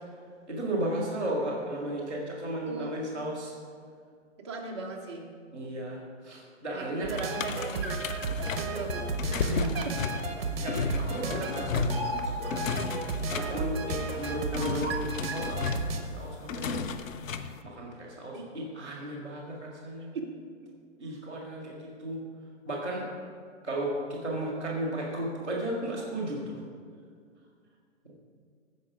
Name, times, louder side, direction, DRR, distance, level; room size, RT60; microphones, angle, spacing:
voice 1, 0.5-3.5 5.5-7.1 7.5-7.8 9.4-9.7 10.6-12.8 13.3-15.8 16.1-16.8 17.6-20.1 21.0-22.2 22.6-23.1 23.6-26.6 28.0-28.2, right 1 dB, 5° left, -12 dB, 0.5 m, -34 dB
voice 2, 4.4-5.3 6.7-8.0 8.4-9.4 9.8-9.9 13.4-13.7 18.3-18.5 20.1-20.3, right 4 dB, 20° right, -1 dB, 0.8 m, -38 dB
sound 1, 7.0-16.0, right 3 dB, 50° right, 1.2 m, -33 dB
sound 2, 7.2-17.6, left 5 dB, 80° left, 0.8 m, -34 dB
15.0 x 5.3 x 4.9 m, 2.1 s
hypercardioid pair, 165°, 39 cm